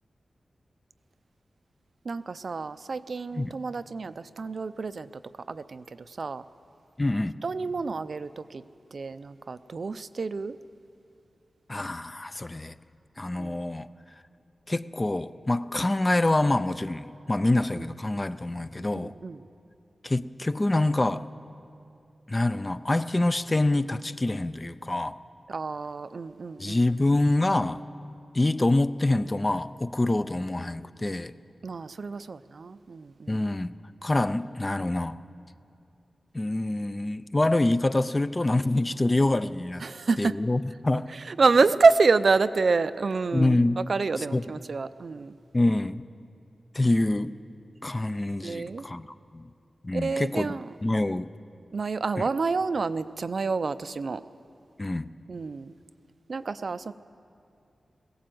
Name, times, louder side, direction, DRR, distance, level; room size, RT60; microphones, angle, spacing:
voice 1, 2.0-5.1 5.5-6.5 7.4-8.6 8.9-10.6 13.4-13.6 17.7-17.8 18.9-19.4 25.5-26.8 31.6-33.4 39.8-40.4 41.1-43.6 43.9-45.3 48.4-48.9 49.9-50.7 51.7-54.2 55.3-55.7 56.3-56.9, right 4 dB, 55° right, 13 dB, 0.5 m, -27 dB
voice 2, 7.0-7.4 11.7-12.7 13.2-13.9 14.7-19.1 20.0-21.3 22.3-25.2 26.6-27.8 28.3-31.3 33.3-33.8 34.0-35.2 36.3-39.8 40.2-41.1 43.3-43.8 44.2-44.4 45.5-46.0 46.7-47.4 47.8-49.1 49.3-49.5 49.8-51.3 54.8-55.1, left 2 dB, 20° left, 13 dB, 0.4 m, -26 dB
21.0 x 17.0 x 7.7 m, 2.5 s
wide cardioid pair, 120°, 0 cm